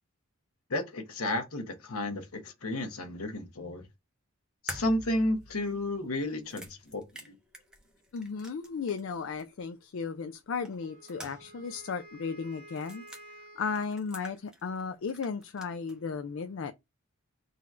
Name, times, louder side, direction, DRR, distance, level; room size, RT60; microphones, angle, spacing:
voice 1, 0.7-3.8 4.6-7.0 7.3-7.4, left 1 dB, 75° left, 1.1 m, -32 dB
sound 1, 4.7-9.1 9.4-9.5 10.7-11.7 11.9-12.0 12.7-13.2 13.8-14.8 15.1-16.0, equal, 5° right, 0.7 m, -46 dB
voice 2, 8.1-13.0 13.6-16.7, left 5 dB, 60° left, 0.4 m, -35 dB
Wind instrument woodwind instrument, 10.7-14.0, right 1 dB, 75° right, 1.3 m, -52 dB
4.0 x 2.4 x 4.2 m
head